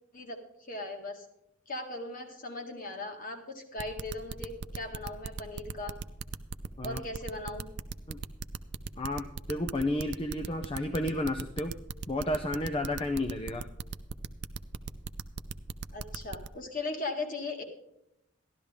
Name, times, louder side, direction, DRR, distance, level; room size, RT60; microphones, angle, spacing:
voice 1, 0.7-1.3 1.7-6.0 6.8-7.7 15.9-17.6, left 2 dB, 40° left, 4 dB, 1.8 m, -38 dB
sound 1, 3.8-16.5, right 5 dB, 55° right, 0.5 m, -38 dB
voice 2, 9.0-11.7 12.1-13.7, left 1 dB, 25° left, 6 dB, 0.6 m, -32 dB
13.0 x 12.0 x 3.6 m, 0.82 s
head